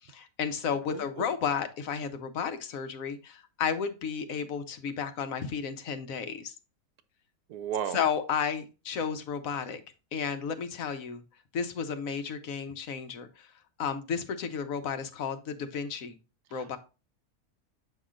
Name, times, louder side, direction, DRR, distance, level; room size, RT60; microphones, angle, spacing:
voice 1, 0.0-6.5 7.9-9.8 10.1-11.2 11.5-13.5 13.8-16.2 16.5-16.8, left 7 dB, 65° left, 1.1 m, -33 dB
voice 2, 0.7-1.3 7.5-8.0 16.5-16.7, right 9 dB, 85° right, 1.1 m, -35 dB
7.6 x 5.6 x 2.5 m
omnidirectional pair, 1.6 m